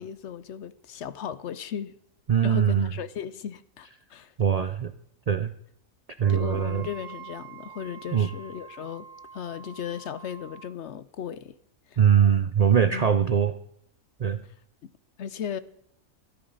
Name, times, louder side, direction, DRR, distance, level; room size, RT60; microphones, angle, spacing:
voice 1, 0.0-1.9 2.4-4.3 6.3-9.1 9.3-11.6 11.9-12.0 12.9-13.2 15.2-15.6, left 8 dB, 65° left, 0.9 m, -36 dB
voice 2, 2.3-2.9 4.4-4.9 5.3-5.5 6.2-6.9 8.1-8.3 12.0-13.5 14.2-14.4, right 8 dB, 85° right, 0.3 m, -22 dB
Wind instrument woodwind instrument, 6.2-10.7, right 8 dB, 70° right, 1.6 m, -46 dB
13.5 x 13.0 x 3.9 m
omnidirectional pair, 1.4 m